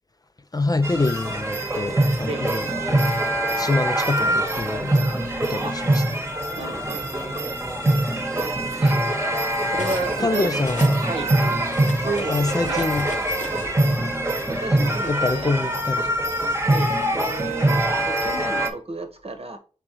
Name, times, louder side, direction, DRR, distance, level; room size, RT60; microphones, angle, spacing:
voice 1, 0.5-3.1 3.6-5.1 5.4-6.0 10.2-11.0 12.3-13.1 15.1-16.2, left 3 dB, 30° left, 0.4 m, -25 dB
sound 1, 0.8-18.7, right 1 dB, 20° right, 1.0 m, -23 dB
Cutlery silverware, 4.1-5.4 6.4-6.6 7.0-10.2 10.5-13.7, left 3 dB, 85° left, 0.8 m, -38 dB
voice 2, 6.6-7.5 8.4-9.2 9.7-10.6 11.0-11.3 11.9-12.9 14.5-15.5 16.6-19.6, right 3 dB, 55° right, 1.0 m, -32 dB
4.9 x 3.7 x 2.9 m
wide cardioid pair, 55°, 12 cm